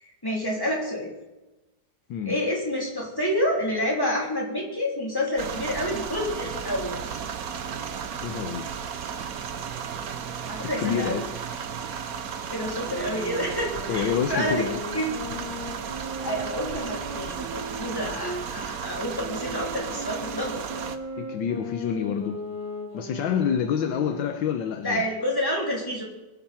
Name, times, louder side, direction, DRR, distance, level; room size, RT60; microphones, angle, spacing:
voice 1, 0.2-1.1 2.2-7.0 10.5-11.3 12.5-14.6 14.9-15.1 16.2-20.6 24.8-26.0, left 1 dB, 10° left, -3 dB, 3.6 m, -28 dB
sound 1, 5.4-21.0, right 7 dB, 55° right, 1.2 m, -34 dB
voice 2, 8.2-8.7 10.6-11.3 13.9-14.8 21.2-22.4 22.9-25.1, left 8 dB, 75° left, 7 dB, 1.6 m, -28 dB
sound 2, 12.8-18.5 19.2-24.5, equal, 20° right, 6.9 m, -37 dB
22.5 x 10.5 x 4.4 m, 1.1 s
omnidirectional pair, 2.2 m